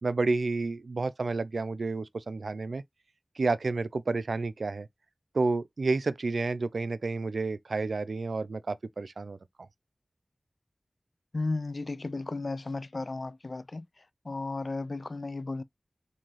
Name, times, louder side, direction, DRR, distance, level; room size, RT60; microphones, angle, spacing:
voice 1, 0.0-2.8 3.4-4.9 5.3-9.4, right 3 dB, 85° right, 0.3 m, -30 dB
voice 2, 11.3-13.9 14.3-15.6, left 3 dB, 65° left, 0.3 m, -34 dB
3.8 x 2.7 x 3.1 m
wide cardioid pair, 40°, 0 cm